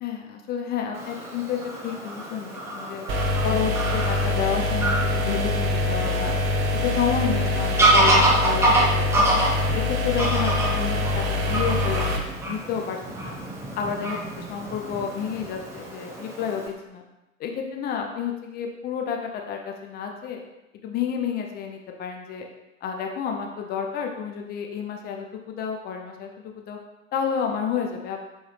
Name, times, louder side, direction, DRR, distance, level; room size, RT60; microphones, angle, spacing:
voice 1, 0.0-3.1 3.4-6.4 6.8-9.4 9.7-13.4 13.8-17.0 17.4-20.4 20.8-22.4 22.8-26.8 27.1-28.2, left 7 dB, 25° left, 2 dB, 0.5 m, -30 dB
Fowl / Bird vocalization bird call bird song, 0.9-16.7, right 2 dB, 5° right, 0.9 m, -27 dB
sound 1, 3.1-12.2, left 2 dB, 40° right, 0.7 m, -24 dB
4.3 x 3.7 x 3.1 m, 0.97 s
figure-of-eight pair, 80°, 38 cm